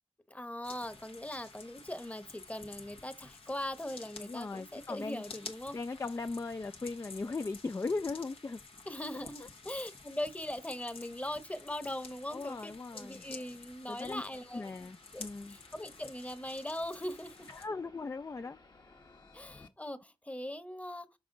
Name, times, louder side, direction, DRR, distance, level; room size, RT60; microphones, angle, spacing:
voice 1, 0.3-5.8 8.9-14.7 15.1-17.5 19.3-21.1, left 1 dB, 15° left, 0.9 m, -40 dB
sound 1, 0.6-17.7, left 4 dB, 85° left, 1.1 m, -51 dB
voice 2, 4.2-5.2 5.7-8.6 9.4-9.5 12.3-13.2 13.9-14.2 14.5-15.6 17.5-18.6, left 3 dB, 35° left, 0.3 m, -38 dB
sound 2, 8.7-19.7, left 3 dB, 55° left, 1.2 m, -63 dB
6.2 x 5.0 x 3.7 m
cardioid pair, 45°, 9 cm